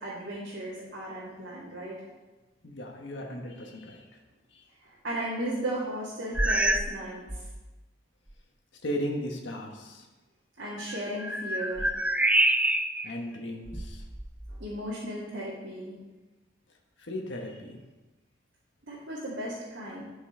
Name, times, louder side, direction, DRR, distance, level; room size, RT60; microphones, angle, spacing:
voice 1, 0.0-1.9 4.8-7.2 10.6-11.9 14.5-15.9 18.9-20.0, right 1 dB, 80° right, -8 dB, 2.1 m, -35 dB
voice 2, 2.6-4.0 4.5-4.6 8.8-10.1 13.0-14.0 17.0-17.8, equal, 70° left, 1 dB, 1.3 m, -36 dB
sound 1, 6.3-7.0 7.3-7.6 8.3-8.4 10.8-13.1 13.7-14.7, right 1 dB, 5° right, 0.3 m, -27 dB
11.5 x 5.5 x 3.8 m, 1.2 s
head